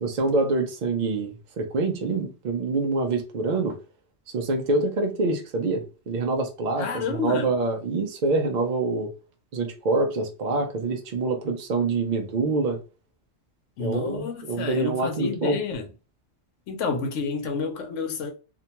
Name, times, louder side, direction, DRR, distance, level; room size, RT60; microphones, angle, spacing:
voice 1, 0.0-3.8 4.3-9.1 9.5-12.8 13.8-15.6, right 3 dB, 65° right, 0.4 m, -26 dB
voice 2, 6.8-7.5 13.8-15.9 16.7-18.3, left 5 dB, 90° left, 1.0 m, -29 dB
2.5 x 2.1 x 2.8 m
omnidirectional pair, 1.2 m